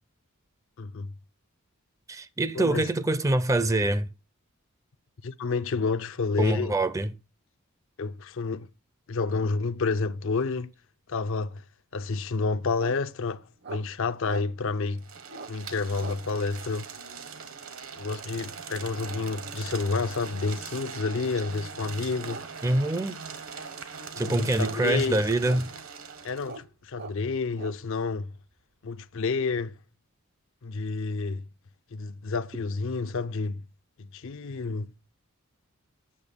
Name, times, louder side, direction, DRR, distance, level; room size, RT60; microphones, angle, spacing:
voice 1, 0.8-1.1 2.5-2.9 5.2-6.8 8.0-8.7 9.1-10.7 11.1-11.6 11.9-15.1 15.5-17.0 17.9-22.4 24.1-25.2 26.2-28.3 28.8-29.8 30.6-31.4 31.9-33.6 34.0-34.9, left 4 dB, 65° left, 0.5 m, -29 dB
voice 2, 2.1-4.1 6.4-7.1 22.6-23.2 24.2-25.7, right 2 dB, 15° right, 0.5 m, -25 dB
sound 1, 12.8-13.0 13.6-13.9 14.2-14.5 15.2-15.5 16.0-16.2 18.2-18.4 21.3-21.4 22.2-22.5 22.8-22.9 23.3-23.6 24.2-25.0 25.4-25.9 26.4-26.7 26.9-27.8, right 3 dB, 50° right, 0.8 m, -41 dB
sound 2, 15.0-26.6, right 6 dB, 70° right, 1.3 m, -41 dB
8.7 x 6.6 x 5.1 m
head